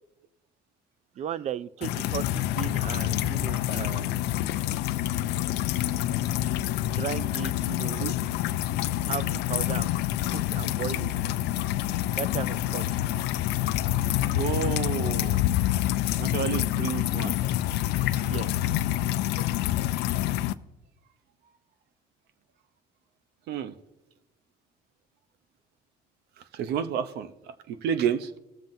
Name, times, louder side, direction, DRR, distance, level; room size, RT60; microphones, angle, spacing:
voice 1, 1.2-4.4 6.9-8.0 9.0-10.0 10.3-11.1 12.2-12.8 18.2-18.5, right 9 dB, 45° right, 0.4 m, -36 dB
sound 1, 1.8-20.5, left 13 dB, 85° left, 0.4 m, -27 dB
voice 2, 14.3-15.5 16.2-17.4 23.5-23.7 26.5-28.3, right 8 dB, 75° right, 0.7 m, -30 dB
20.0 x 7.4 x 2.6 m
cardioid pair, 110°, 17 cm